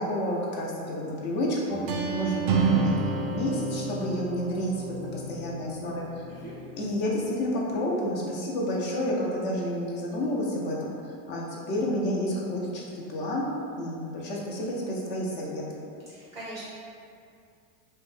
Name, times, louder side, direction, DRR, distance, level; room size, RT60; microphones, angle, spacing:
voice 1, 0.0-4.7 5.0-6.2 6.8-15.6, equal, 25° left, -3 dB, 0.4 m, -30 dB
sound 1, 1.7-7.4, right 3 dB, 55° right, 0.4 m, -30 dB
voice 2, 16.1-16.6, right 1 dB, 15° right, -8 dB, 0.6 m, -41 dB
2.6 x 2.1 x 3.1 m, 2.4 s
supercardioid pair, 120°, 44 cm